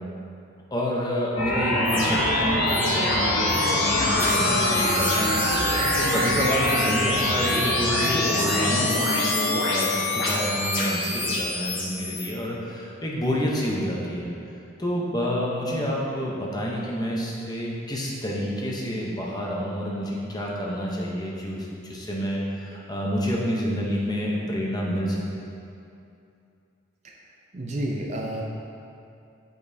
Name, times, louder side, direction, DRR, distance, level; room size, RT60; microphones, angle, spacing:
voice 1, 0.7-5.3 5.6-14.3 14.8-25.4, equal, 20° left, -3 dB, 0.7 m, -28 dB
sound 1, 1.4-12.3, left 1 dB, 70° left, 1.3 m, -24 dB
voice 2, 27.5-28.4, right 1 dB, 35° right, -1 dB, 0.5 m, -30 dB
8.4 x 5.3 x 2.7 m, 2.6 s
head